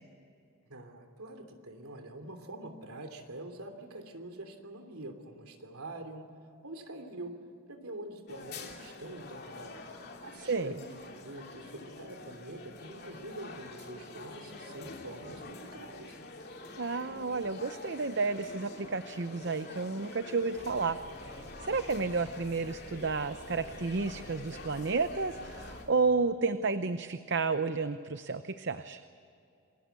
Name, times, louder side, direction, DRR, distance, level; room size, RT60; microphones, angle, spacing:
voice 1, 0.7-6.3 6.6-7.4 7.7-9.8 10.2-16.2, right 1 dB, 85° right, 6 dB, 3.1 m, -45 dB
sound 1, 8.3-25.9, left 2 dB, 45° left, 2.8 m, -47 dB
voice 2, 16.8-29.0, right 4 dB, 50° right, 10 dB, 0.7 m, -31 dB
sound 2, 20.5-25.9, equal, 10° right, 6.3 m, -52 dB
28.0 x 21.5 x 8.3 m, 2.5 s
head